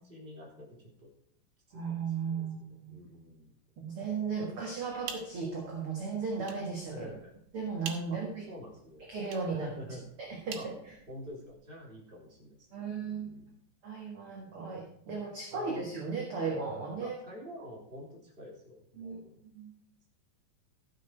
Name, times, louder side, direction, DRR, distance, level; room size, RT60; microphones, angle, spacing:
voice 1, 0.0-1.1 1.7-1.9 2.2-2.4 2.9-3.6 6.9-7.3 8.1-8.2 8.5-9.1 9.6-10.1 10.5-10.7 11.1-13.6 15.1-15.9 17.0-19.4, equal, 15° right, -2 dB, 2.9 m, -48 dB
voice 2, 1.7-3.0 3.8-7.1 7.5-8.4 9.1-9.7 10.2-10.7 12.7-13.3 13.8-17.2 19.0-19.2 19.4-19.7, right 5 dB, 50° right, -1 dB, 2.0 m, -36 dB
sound 1, 4.8-11.6, right 7 dB, 80° right, 3.2 m, -48 dB
13.5 x 7.6 x 4.5 m, 0.68 s
omnidirectional pair, 4.3 m